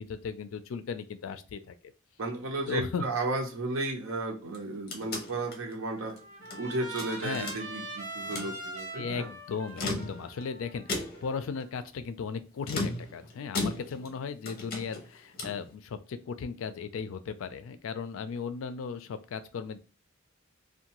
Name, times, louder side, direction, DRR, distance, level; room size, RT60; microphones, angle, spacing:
voice 1, 0.0-1.8 2.7-3.0 7.2-7.5 9.0-19.8, left 5 dB, 75° left, 11 dB, 0.4 m, -36 dB
voice 2, 2.2-6.1 6.6-9.3, right 2 dB, 85° right, 2 dB, 0.7 m, -34 dB
sound 1, 4.4-6.6 7.0-7.9 8.2-8.6 9.6-10.4 10.9-11.4 12.6-14.2 14.4-15.7, left 2 dB, 50° left, 0.7 m, -36 dB
Trumpet, 5.6-11.8, right 2 dB, 40° right, 0.8 m, -43 dB
2.6 x 2.2 x 2.9 m, 0.33 s
head